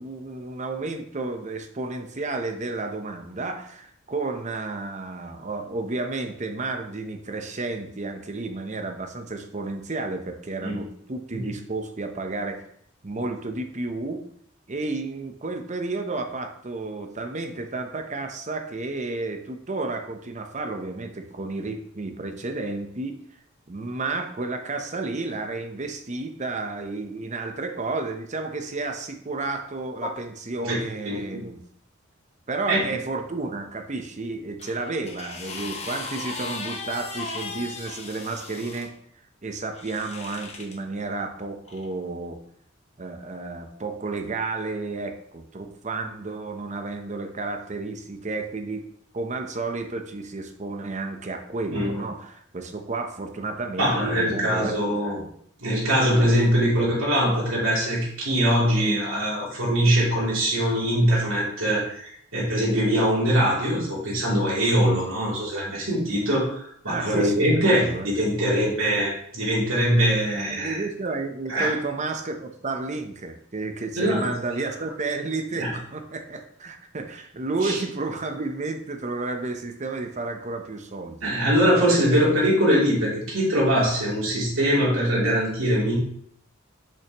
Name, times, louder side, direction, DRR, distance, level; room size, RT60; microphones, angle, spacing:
voice 1, 0.0-12.6 13.0-14.2 14.7-23.2 23.7-31.6 32.5-38.9 39.4-42.4 43.0-48.8 49.1-54.7 55.1-55.3 66.9-68.1 70.5-81.3 81.9-82.2, right 3 dB, 35° right, 6 dB, 0.8 m, -32 dB
voice 2, 31.0-31.4 32.7-32.8 51.7-52.0 53.8-55.2 55.6-70.8 71.5-71.7 74.0-74.3 75.5-75.7 77.6-77.8 81.2-86.0, equal, 90° right, -5 dB, 3.0 m, -22 dB
sound 1, 34.6-38.9 39.7-40.8 41.7-41.8, left 3 dB, 35° left, 0.9 m, -37 dB
6.9 x 5.7 x 3.0 m, 0.66 s
head